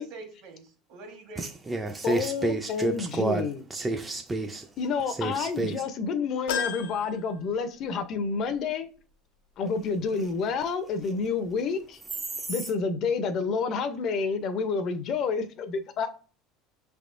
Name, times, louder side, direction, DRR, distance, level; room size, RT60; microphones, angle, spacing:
voice 1, 0.0-1.8 16.0-16.1, right 3 dB, 60° right, 1.4 m, -45 dB
voice 2, 1.4-4.7 5.1-5.7 12.4-12.7, right 2 dB, 15° right, 0.4 m, -30 dB
voice 3, 2.0-3.6 4.8-8.9 9.6-12.0 12.5-16.1, left 5 dB, 45° left, 0.6 m, -29 dB
sound 1, 6.5-8.1 8.5-8.6 9.9-10.0, left 7 dB, 90° left, 0.6 m, -34 dB
6.2 x 3.4 x 2.5 m
cardioid pair, 145°, 0 cm